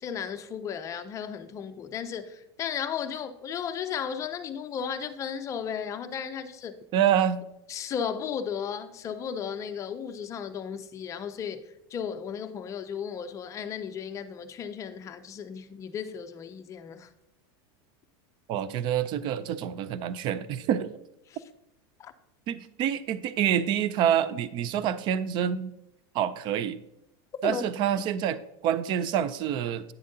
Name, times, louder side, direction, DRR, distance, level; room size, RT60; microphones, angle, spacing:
voice 1, 0.0-6.7 7.7-17.1 22.0-22.1 27.4-27.7, left 7 dB, 25° left, 0.5 m, -35 dB
voice 2, 6.9-7.4 18.5-21.0 22.5-25.7 26.1-26.8 27.4-29.9, right 9 dB, 35° right, 0.4 m, -27 dB
9.6 x 7.3 x 2.7 m
supercardioid pair, 150°, 13 cm